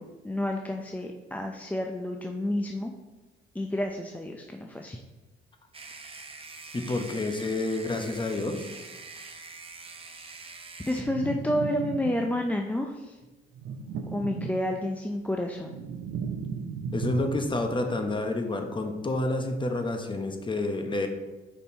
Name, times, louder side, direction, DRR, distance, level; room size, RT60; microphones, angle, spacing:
voice 1, 0.0-2.9 3.5-5.0 10.9-13.2 14.1-15.7, left 1 dB, 10° left, 2 dB, 0.4 m, -30 dB
sound 1, 5.7-11.0, right 4 dB, 30° right, 0.7 m, -44 dB
voice 2, 6.7-8.7 16.9-21.1, left 2 dB, 25° left, 5 dB, 0.9 m, -29 dB
sound 2, 11.0-12.6 13.5-15.0 15.4-17.8, right 6 dB, 70° right, 0.5 m, -36 dB
5.5 x 4.2 x 4.2 m, 1.1 s
cardioid pair, 90°, 20 cm